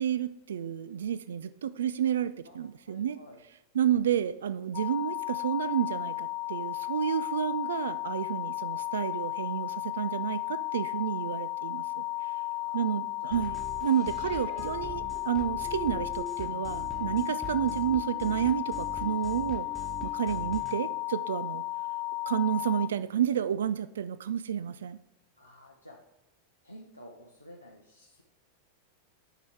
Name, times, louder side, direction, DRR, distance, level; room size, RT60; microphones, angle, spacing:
voice 1, 0.0-3.2 3.7-12.0 12.7-13.5 13.8-15.0 15.3-19.7 20.0-21.6 22.3-25.0, right 9 dB, 65° right, 15 dB, 0.3 m, -30 dB
voice 2, 2.4-3.4 7.8-8.0 8.6-8.8 12.6-12.9 13.2-13.3 14.2-14.6 15.1-15.2 25.4-26.0 26.6-28.2, equal, 85° left, -2 dB, 0.9 m, -51 dB
sound 1, 4.7-22.9, left 18 dB, 40° left, 0.4 m, -34 dB
sound 2, 13.3-20.8, equal, 5° left, 1.2 m, -43 dB
7.4 x 5.4 x 4.6 m, 0.92 s
figure-of-eight pair, 90°, 0 cm